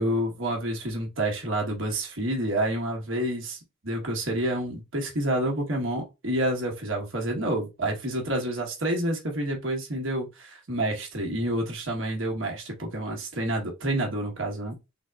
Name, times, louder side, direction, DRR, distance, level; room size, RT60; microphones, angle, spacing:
voice 1, 0.0-3.6 3.8-14.8, right 1 dB, 70° right, 1.3 m, -28 dB
3.9 x 3.6 x 2.4 m
head